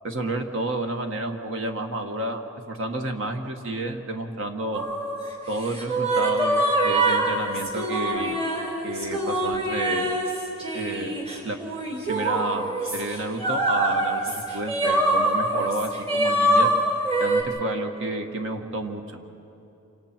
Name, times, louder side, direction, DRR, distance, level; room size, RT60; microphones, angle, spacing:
voice 1, 0.0-4.8 5.5-8.4 8.8-10.1 10.7-11.1 11.4-11.6 12.1-16.7 17.2-19.0, right 2 dB, 60° right, 5 dB, 1.5 m, -30 dB
sound 1, 4.7-17.4, right 1 dB, 30° right, 3.5 m, -25 dB
28.0 x 26.5 x 4.5 m, 2.8 s
head